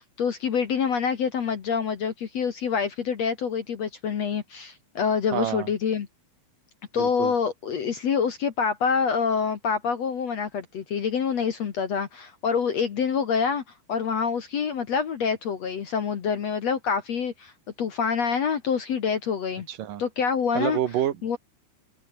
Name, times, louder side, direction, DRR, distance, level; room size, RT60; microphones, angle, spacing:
voice 1, 0.2-6.1 6.9-13.6 13.9-17.5 17.8-19.7 20.0-20.8 21.2-21.4, left 6 dB, 55° left, 1.9 m, -26 dB
voice 2, 5.3-5.7 6.9-7.3 19.7-20.0 20.5-21.4, right 11 dB, 55° right, 3.1 m, -28 dB
open air
omnidirectional pair, 5.3 m